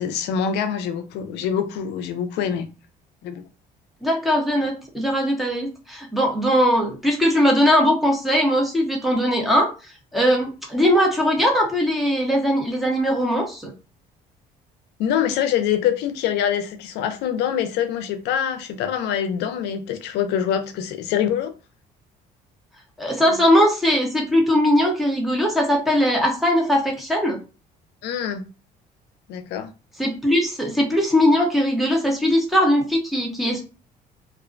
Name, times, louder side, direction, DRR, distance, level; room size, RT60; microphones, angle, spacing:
voice 1, 0.0-2.7 3.2-3.4 15.0-21.5 23.3-23.4 28.0-28.4 29.3-29.7, left 9 dB, 85° left, 0.5 m, -25 dB
voice 2, 4.0-13.7 23.0-27.4 30.0-33.6, equal, ahead, 0.8 m, -20 dB
2.4 x 2.1 x 2.4 m
cardioid pair, 110°, 17 cm